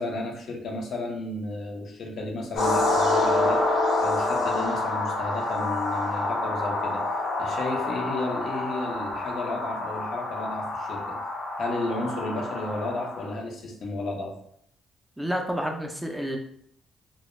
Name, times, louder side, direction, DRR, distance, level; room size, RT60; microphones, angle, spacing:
voice 1, 0.0-7.0 7.4-11.2 11.6-14.4, left 2 dB, 60° left, 1 dB, 0.6 m, -33 dB
sound 1, 2.5-13.3, left 2 dB, 85° left, 1.0 m, -27 dB
voice 2, 15.2-16.4, equal, 5° right, 2 dB, 0.4 m, -29 dB
2.1 x 2.1 x 3.0 m, 0.67 s
cardioid pair, 90°, 0 cm